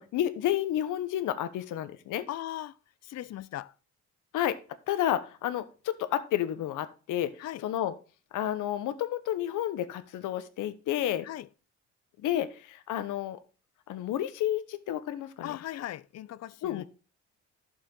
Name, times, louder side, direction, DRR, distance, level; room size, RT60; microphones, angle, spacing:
voice 1, 0.0-2.3 4.3-4.6 4.9-7.3 7.6-7.9 8.3-11.3 12.2-13.4 13.9-15.5 16.6-16.8, left 12 dB, 85° left, 1.0 m, -30 dB
voice 2, 2.3-2.8 3.0-3.7 7.4-7.6 11.2-11.5 15.4-16.9, left 13 dB, 60° left, 0.6 m, -38 dB
11.5 x 6.8 x 3.9 m
cardioid pair, 90°, 30 cm